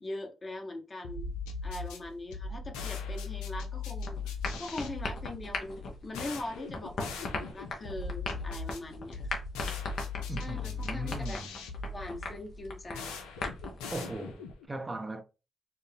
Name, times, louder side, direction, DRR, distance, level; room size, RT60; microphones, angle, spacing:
voice 1, 0.0-1.3 1.6-4.2 4.6-9.2 10.3-11.4 11.9-13.2, left 2 dB, 40° left, 1.0 m, -41 dB
sound 1, 1.0-14.7, left 4 dB, 90° left, 0.5 m, -39 dB
sound 2, 4.0-13.8, left 3 dB, 70° left, 0.9 m, -40 dB
voice 2, 10.3-11.4 13.9-15.2, right 2 dB, 30° right, 0.6 m, -38 dB
4.3 x 2.1 x 3.4 m
hypercardioid pair, 40°, 0 cm